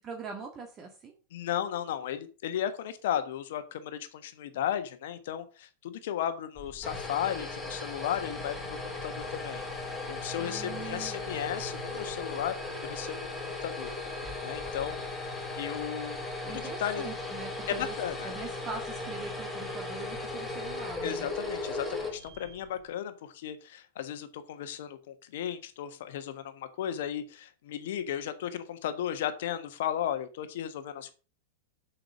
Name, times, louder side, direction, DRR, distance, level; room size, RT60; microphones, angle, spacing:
voice 1, 0.0-1.2 10.4-11.2 16.4-17.9 18.2-21.3, right 5 dB, 25° right, 3 dB, 1.8 m, -42 dB
voice 2, 1.3-12.6 12.8-13.9 14.4-15.0 15.5-16.2 16.4-17.1 17.7-18.3 21.0-31.1, left 10 dB, 55° left, 10 dB, 1.3 m, -35 dB
sound 1, 6.6-22.8, left 2 dB, ahead, 3.6 m, -37 dB
7.8 x 6.7 x 6.1 m, 0.36 s
figure-of-eight pair, 90°, 0 cm